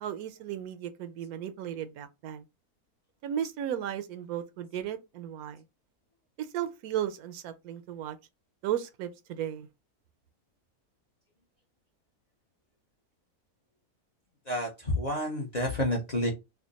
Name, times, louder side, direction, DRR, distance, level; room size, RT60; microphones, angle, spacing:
voice 1, 0.0-2.4 3.2-5.6 6.4-8.2 8.6-9.7, right 10 dB, 80° right, 1.0 m, -35 dB
voice 2, 14.5-16.3, left 1 dB, 35° left, 0.7 m, -29 dB
3.5 x 2.1 x 3.8 m
omnidirectional pair, 1.6 m